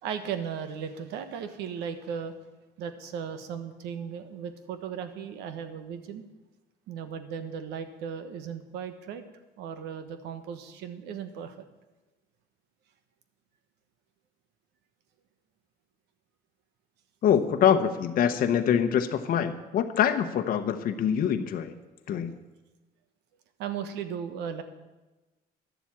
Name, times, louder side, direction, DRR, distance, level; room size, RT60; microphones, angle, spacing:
voice 1, 0.0-2.3 2.8-6.2 6.9-9.2 9.6-11.5 23.6-24.6, right 7 dB, 90° right, 9 dB, 1.2 m, -36 dB
voice 2, 17.2-21.7 22.1-22.3, left 8 dB, 60° left, 7 dB, 0.9 m, -24 dB
11.5 x 7.4 x 8.5 m, 1.1 s
cardioid pair, 110°, 17 cm